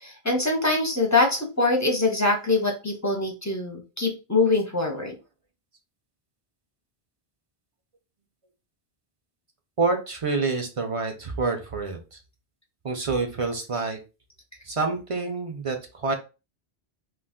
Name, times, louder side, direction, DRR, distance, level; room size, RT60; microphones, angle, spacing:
voice 1, 0.0-5.1, left 3 dB, 25° left, 1 dB, 0.5 m, -24 dB
voice 2, 9.8-12.2 12.8-14.0 14.6-16.1, right 3 dB, 45° right, 4 dB, 0.5 m, -27 dB
2.4 x 2.3 x 3.6 m, 0.30 s
omnidirectional pair, 1.0 m